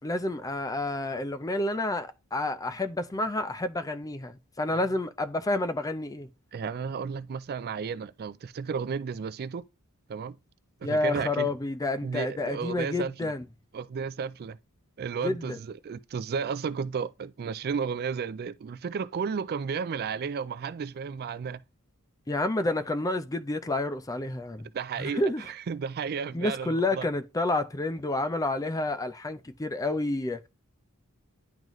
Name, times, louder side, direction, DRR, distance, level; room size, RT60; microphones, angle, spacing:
voice 1, 0.0-6.3 10.8-13.4 15.2-15.6 22.3-24.7 25.0-25.4 26.3-30.5, left 2 dB, 15° left, 0.4 m, -29 dB
voice 2, 6.5-9.6 10.1-10.4 10.8-11.5 12.0-13.3 13.7-14.6 15.0-21.6 24.7-27.1, right 6 dB, 45° right, 0.3 m, -33 dB
10.5 x 3.9 x 3.1 m
head